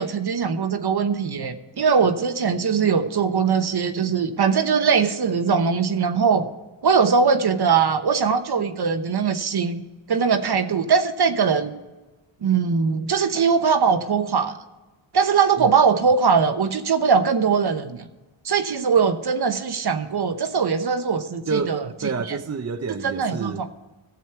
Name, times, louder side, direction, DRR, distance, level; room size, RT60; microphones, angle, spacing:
voice 1, 0.0-6.5 6.8-9.8 10.1-11.7 12.4-14.5 15.1-18.0 18.4-21.9 22.3-22.4 23.0-23.7, right 6 dB, 55° right, 9 dB, 1.0 m, -21 dB
voice 2, 21.5-23.6, right 4 dB, 35° right, 6 dB, 0.7 m, -28 dB
14.0 x 7.3 x 4.5 m, 1.1 s
cardioid pair, 70°, 47 cm